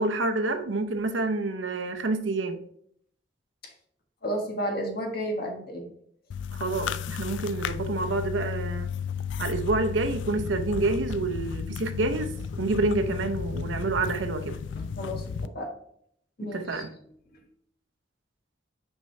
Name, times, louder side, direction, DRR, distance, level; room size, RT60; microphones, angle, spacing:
voice 1, 0.0-2.6 6.5-8.9 9.4-14.6 16.4-16.9, right 3 dB, 80° right, 0.7 m, -28 dB
voice 2, 4.2-5.9 15.0-15.2 15.5-15.7 16.4-16.8, equal, 55° left, 1.5 m, -31 dB
sound 1, 6.3-15.5, left 6 dB, 75° left, 0.3 m, -33 dB
6.1 x 5.3 x 3.2 m
head